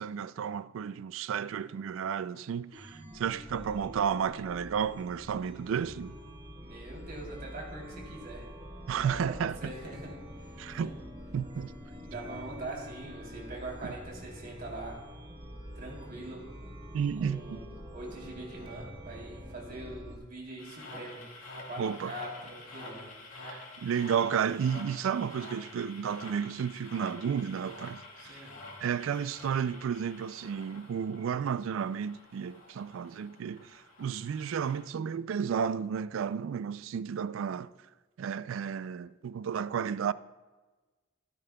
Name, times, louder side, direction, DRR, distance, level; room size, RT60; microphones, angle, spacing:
voice 1, 0.0-6.2 8.9-9.7 10.6-10.9 11.3-11.7 13.8-13.9 16.9-17.6 21.8-22.1 23.4-28.4 28.8-37.7 38.2-40.1, right 7 dB, 65° right, 0.3 m, -32 dB
Chime, 2.7-20.2, equal, 25° right, 1.3 m, -46 dB
voice 2, 6.6-8.5 9.0-10.9 12.1-15.0 15.7-16.5 17.2-21.2 21.6-23.1 28.2-28.5, right 2 dB, 45° right, 3.1 m, -43 dB
sound 1, 20.6-34.8, left 2 dB, 75° left, 2.0 m, -48 dB
13.5 x 12.5 x 2.3 m
head